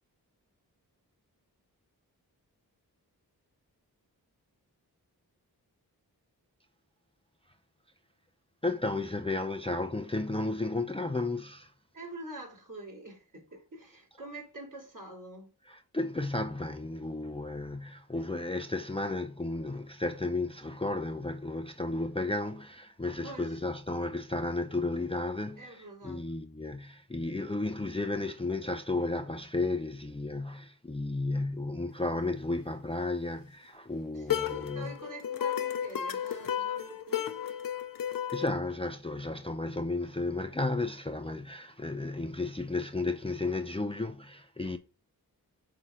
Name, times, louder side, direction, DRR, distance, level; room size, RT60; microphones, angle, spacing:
voice 1, 8.6-11.7 15.7-35.0 38.3-44.8, left 2 dB, 15° left, 0.6 m, -33 dB
voice 2, 11.9-15.5 23.2-23.6 25.6-26.2 34.1-37.3, right 2 dB, 50° right, 3.6 m, -46 dB
sound 1, 34.3-38.5, left 9 dB, 60° left, 0.7 m, -33 dB
5.7 x 3.9 x 6.0 m
cardioid pair, 45°, 39 cm